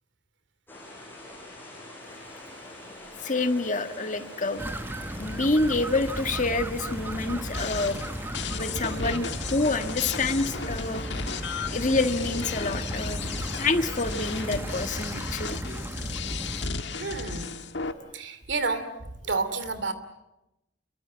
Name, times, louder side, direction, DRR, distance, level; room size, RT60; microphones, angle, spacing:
sound 1, 0.7-14.8, left 1 dB, 10° left, 7.4 m, -44 dB
voice 1, 3.2-4.7 5.2-8.0 8.5-11.0 11.7-13.2 13.6-15.6, left 3 dB, 40° left, 8 dB, 1.6 m, -27 dB
sound 2, 4.6-16.7, right 1 dB, 10° right, 0.9 m, -36 dB
sound 3, 7.5-17.9, left 5 dB, 60° left, 1.6 m, -35 dB
voice 2, 17.0-17.6 18.1-18.9 19.3-19.9, right 3 dB, 65° right, 11 dB, 2.7 m, -30 dB
29.5 x 23.5 x 7.6 m, 0.91 s
head